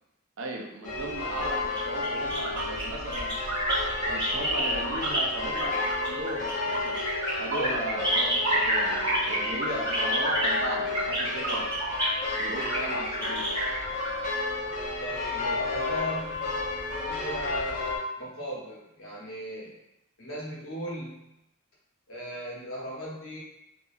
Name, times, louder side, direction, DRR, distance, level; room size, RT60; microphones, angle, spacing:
voice 1, 0.4-3.3 4.1-7.0 7.3-11.8 12.4-13.6, right 2 dB, 70° right, 0 dB, 0.5 m, -37 dB
sound 1, 0.8-18.0, left 3 dB, 40° left, 0.9 m, -32 dB
sound 2, 1.2-5.2 5.5-14.1, right 1 dB, 25° right, 1.2 m, -29 dB
voice 2, 7.5-8.0 15.0-16.4 17.1-17.9 18.2-19.8 20.2-21.2 22.1-23.4, equal, 70° left, -5 dB, 0.9 m, -37 dB
2.7 x 2.6 x 2.3 m, 0.86 s
head